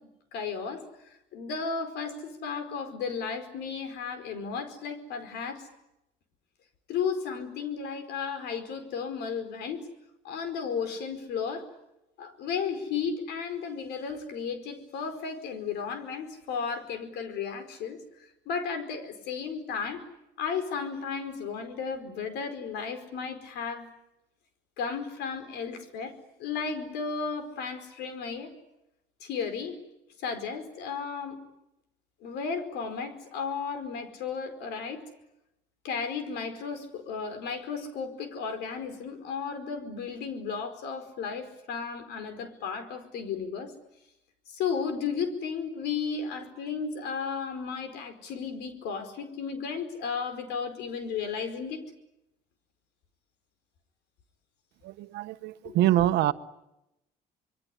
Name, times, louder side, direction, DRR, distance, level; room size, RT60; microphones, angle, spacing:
voice 1, 0.3-0.8 1.3-5.7 6.9-9.8 10.2-11.6 12.2-18.0 18.4-20.0 20.4-23.9 24.8-26.1 26.4-28.5 29.2-29.8 30.2-31.4 32.2-35.0 35.8-43.7 44.5-51.8 55.6-55.7, left 6 dB, 80° left, 10 dB, 4.8 m, -34 dB
voice 2, 54.8-56.3, right 13 dB, 80° right, 11 dB, 1.2 m, -25 dB
26.5 x 22.5 x 9.9 m, 0.88 s
cardioid pair, 110°, 17 cm